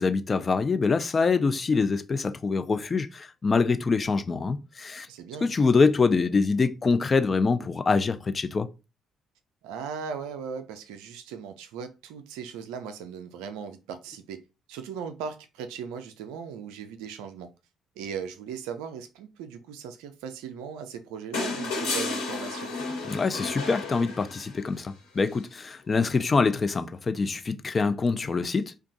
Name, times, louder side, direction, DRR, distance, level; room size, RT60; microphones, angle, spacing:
voice 1, 0.0-5.1 5.4-8.7 23.1-28.8, left 4 dB, 35° left, 0.5 m, -25 dB
voice 2, 5.1-5.5 9.6-14.4 14.7-17.5 18.0-22.7, right 7 dB, 75° right, 0.4 m, -38 dB
sound 1, 21.3-24.7 26.2-26.3, left 3 dB, 80° left, 1.6 m, -32 dB
2.5 x 2.3 x 3.9 m
hypercardioid pair, 50°, 0 cm